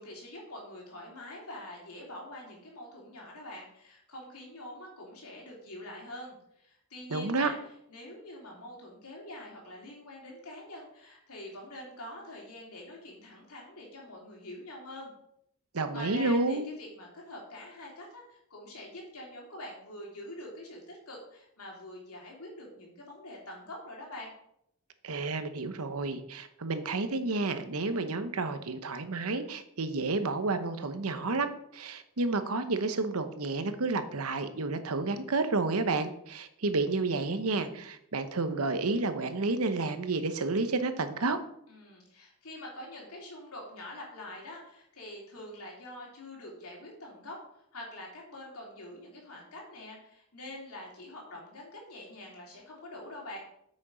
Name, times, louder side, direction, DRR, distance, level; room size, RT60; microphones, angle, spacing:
voice 1, 0.0-7.6 7.9-15.1 15.9-24.3 41.7-53.4, left 1 dB, 85° left, -2 dB, 3.2 m, -45 dB
voice 2, 7.1-7.5 15.7-16.7 25.0-41.4, right 3 dB, 80° right, 9 dB, 0.9 m, -30 dB
8.9 x 6.4 x 5.1 m, 0.76 s
head